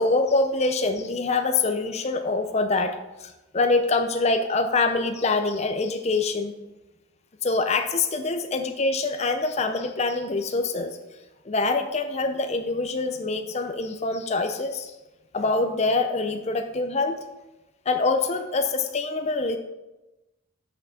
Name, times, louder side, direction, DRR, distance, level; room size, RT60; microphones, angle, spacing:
voice 1, 0.0-3.0 3.2-6.5 7.4-10.9 11.5-14.9 15.3-17.2 17.9-19.6, left 3 dB, 30° left, 7 dB, 0.5 m, -25 dB
5.8 x 5.8 x 6.7 m, 1.0 s
head